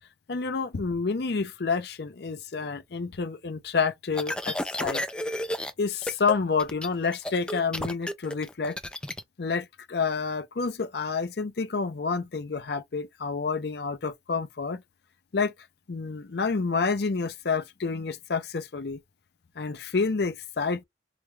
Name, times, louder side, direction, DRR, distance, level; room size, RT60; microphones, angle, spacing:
voice 1, 0.3-5.0 5.8-8.8 9.4-14.8 15.3-15.5 15.9-19.0 19.6-20.8, left 4 dB, 60° left, 0.5 m, -29 dB
sound 1, 4.1-5.7 6.0-6.3 6.6-9.2, left 1 dB, 5° left, 0.4 m, -32 dB
4.8 x 2.2 x 3.0 m
head